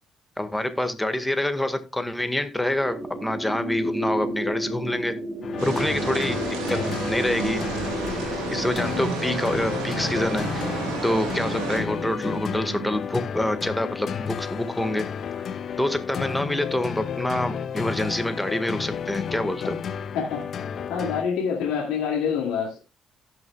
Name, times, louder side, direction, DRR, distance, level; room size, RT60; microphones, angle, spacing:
voice 1, 0.4-5.2 5.6-6.4 6.7-6.8 7.1-7.6 8.1-10.6 11.0-15.1 15.8-19.8, left 1 dB, 10° left, 1.6 m, -26 dB
sound 1, 2.8-13.0, right 2 dB, 45° right, 3.4 m, -33 dB
sound 2, 5.4-21.2, left 7 dB, 55° left, 0.9 m, -32 dB
sound 3, 5.6-11.8, right 5 dB, 80° right, 2.2 m, -32 dB
voice 2, 6.6-7.0 8.8-9.0 20.1-20.5 20.9-22.8, left 7 dB, 75° left, 2.3 m, -27 dB
17.0 x 6.2 x 2.3 m
hypercardioid pair, 50°, 0 cm